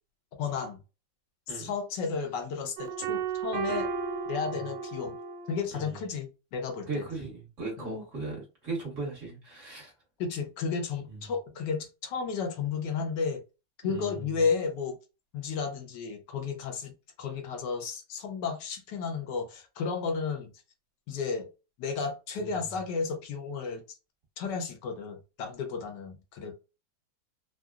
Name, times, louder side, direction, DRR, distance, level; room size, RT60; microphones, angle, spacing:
voice 1, 0.4-0.8 1.5-3.9 4.3-5.1 5.5-7.0 7.8-7.9 10.2-13.4 13.8-15.0 15.3-16.9 17.2-20.5 21.1-21.5 21.8-23.8 24.4-26.5, left 5 dB, 70° left, 1.3 m, -33 dB
sound 1, 2.8-5.6, right 6 dB, 90° right, 1.4 m, -34 dB
voice 2, 6.9-9.9 11.1-11.2 13.8-14.3 22.4-22.5, right 3 dB, 45° right, 1.3 m, -37 dB
3.8 x 2.0 x 2.3 m
omnidirectional pair, 2.1 m